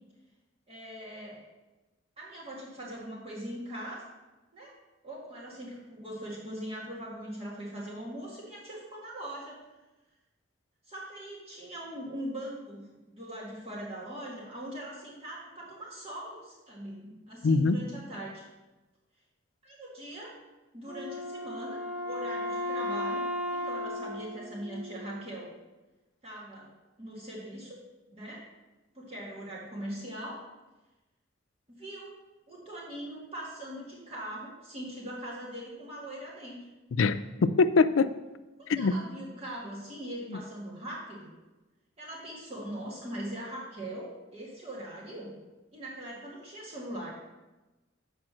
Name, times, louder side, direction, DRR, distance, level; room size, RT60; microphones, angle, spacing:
voice 1, 0.7-1.4 2.2-4.0 4.5-4.8 5.0-9.6 10.9-18.5 19.6-20.4 20.7-21.8 22.0-25.5 26.2-26.7 27.0-27.8 28.1-28.5 28.9-30.5 31.7-32.1 32.5-36.7 38.6-41.3 42.0-45.4 45.7-47.2, right 1 dB, 30° right, -6 dB, 1.9 m, -41 dB
voice 2, 17.4-17.8 36.9-38.1 38.7-38.9 40.3-40.4, left 4 dB, 90° left, 12 dB, 0.4 m, -24 dB
Wind instrument woodwind instrument, 20.9-25.4, left 1 dB, 45° left, 1.3 m, -35 dB
7.6 x 5.2 x 6.1 m, 1.1 s
head